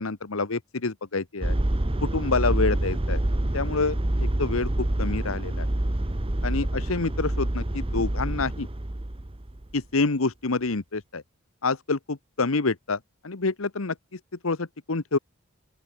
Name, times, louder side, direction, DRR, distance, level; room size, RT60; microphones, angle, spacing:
voice 1, 0.0-1.5 2.0-3.2 3.5-4.0 4.4-5.7 6.4-8.7 9.7-11.2 11.6-13.0 13.2-15.2, left 3 dB, 85° left, 1.2 m, -27 dB
sound 1, 1.4-9.7, right 1 dB, 25° right, 1.1 m, -27 dB
open air
head